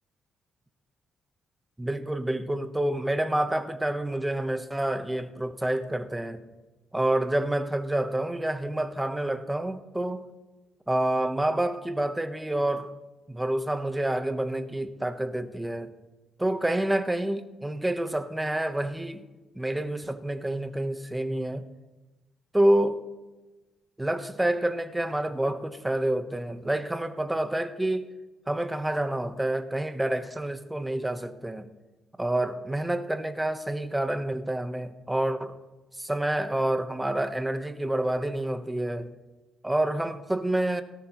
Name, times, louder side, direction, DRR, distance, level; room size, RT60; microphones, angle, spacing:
voice 1, 1.8-6.4 6.9-10.2 10.9-12.9 13.3-15.9 16.4-19.2 19.5-21.6 22.5-23.0 24.0-28.1 28.5-31.7 32.2-35.6 36.0-39.1 39.6-40.8, right 1 dB, 10° right, 1.1 m, -28 dB
18.0 x 13.5 x 3.1 m
cardioid pair, 90°, 0 cm